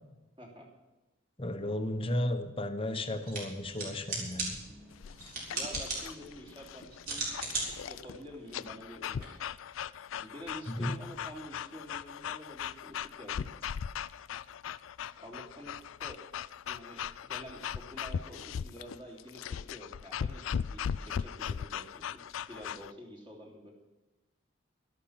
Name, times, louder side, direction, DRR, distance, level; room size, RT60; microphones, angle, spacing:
voice 1, 0.4-0.7 5.5-7.4 7.8-9.3 10.2-13.5 15.2-16.2 16.6-22.2 22.5-23.7, equal, 25° right, -2 dB, 3.2 m, -48 dB
voice 2, 1.4-4.6 10.7-10.9, left 1 dB, 30° left, 7 dB, 1.1 m, -34 dB
sound 1, 3.2-9.3, right 2 dB, 45° right, 4.8 m, -39 dB
sound 2, 4.9-22.9, left 8 dB, 80° left, 0.4 m, -39 dB
13.0 x 12.0 x 5.9 m, 1.1 s
head